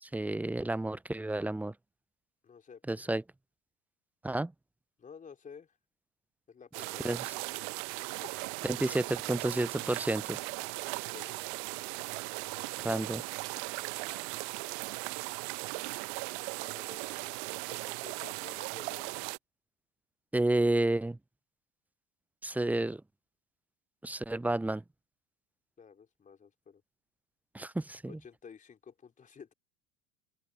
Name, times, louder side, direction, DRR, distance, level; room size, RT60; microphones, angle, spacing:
voice 1, 0.0-1.7 2.9-3.2 4.2-4.5 7.0-7.2 8.6-10.4 12.8-13.2 20.3-21.2 22.4-23.0 24.0-24.8 27.5-28.1, right 2 dB, 5° right, 0.7 m, -30 dB
voice 2, 2.4-3.1 5.0-5.8 6.5-7.1 8.0-8.5 11.0-11.5 16.6-19.2 25.8-26.8 28.1-29.5, left 6 dB, 20° left, 3.6 m, -52 dB
sound 1, 6.7-19.4, right 38 dB, 50° right, 1.1 m, -38 dB
open air
figure-of-eight pair, 80°, 35 cm